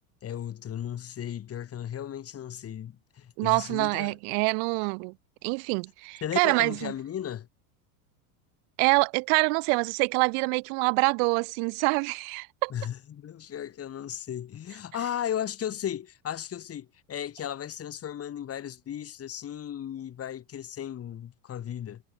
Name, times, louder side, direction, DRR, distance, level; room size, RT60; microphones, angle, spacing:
voice 1, 0.2-4.1 6.2-7.5 12.7-22.0, left 10 dB, 30° left, 5.1 m, -35 dB
voice 2, 3.4-5.1 5.4-6.9 8.8-12.7, right 40 dB or more, 60° right, 5.3 m, -26 dB
supercardioid pair, 130°, 45 cm